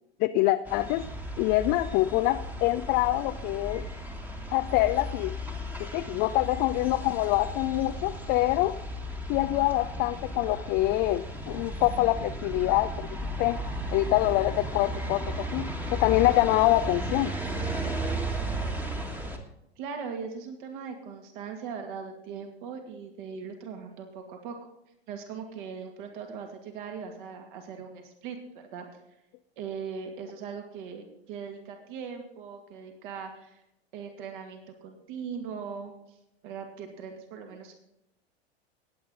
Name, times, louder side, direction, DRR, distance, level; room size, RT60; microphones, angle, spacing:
voice 1, 0.2-1.0 1.4-3.8 4.5-5.3 5.8-8.8 9.3-13.1 13.4-13.6 13.9-17.3, left 17 dB, 30° left, 9 dB, 0.4 m, -25 dB
sound 1, 0.6-19.4, right 1 dB, 5° right, 1.5 m, -35 dB
voice 2, 19.8-24.5 25.1-28.8 29.6-33.6 33.9-35.9 36.4-37.7, right 6 dB, 50° right, 4 dB, 2.3 m, -39 dB
18.5 x 8.7 x 3.9 m, 0.83 s
figure-of-eight pair, 90°, 32 cm